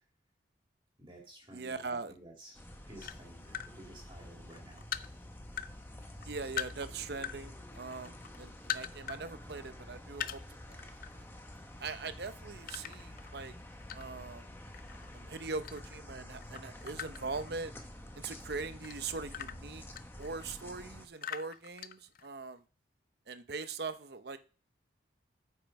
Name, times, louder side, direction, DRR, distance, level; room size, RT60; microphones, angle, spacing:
voice 1, 1.0-4.8, right 1 dB, 25° right, 2.2 m, -53 dB
voice 2, 1.5-2.1 6.3-10.4 10.7-10.9 11.1-11.2 11.8-13.5 13.9-14.5 15.1-17.7 18.2-19.8 20.2-22.6 23.3-24.4, right 4 dB, 55° right, 0.7 m, -41 dB
sound 1, 2.5-21.1, left 1 dB, 10° left, 0.9 m, -49 dB
sound 2, 3.0-3.7 4.2-5.7 6.0-7.4 7.7-9.2 9.5-9.6 10.1-11.1 11.5-11.7 12.7-14.3 14.7-16.1 16.4-18.0 18.5-20.6 21.2-22.5, left 9 dB, 45° left, 0.4 m, -41 dB
9.0 x 5.6 x 5.2 m
head